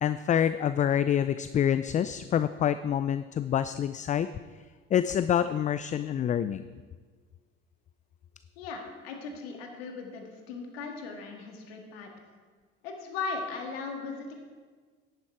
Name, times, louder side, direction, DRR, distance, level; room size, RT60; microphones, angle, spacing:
voice 1, 0.0-4.3 4.9-6.7, left 9 dB, 25° left, 13 dB, 0.3 m, -27 dB
voice 2, 8.6-12.1 12.8-14.3, left 4 dB, 75° left, 2 dB, 1.9 m, -38 dB
10.5 x 9.9 x 4.5 m, 1.5 s
hypercardioid pair, 60°, 30 cm